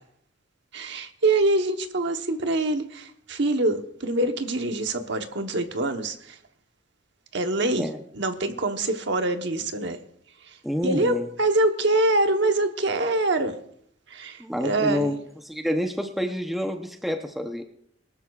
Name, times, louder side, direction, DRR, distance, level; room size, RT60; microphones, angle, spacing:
voice 1, 0.7-6.4 7.3-10.0 10.4-10.6 10.8-13.6 14.1-15.1, right 2 dB, 65° right, 1.1 m, -25 dB
voice 2, 10.6-11.3 14.4-15.2 15.4-17.6, equal, ahead, 0.7 m, -28 dB
22.5 x 12.5 x 2.4 m
head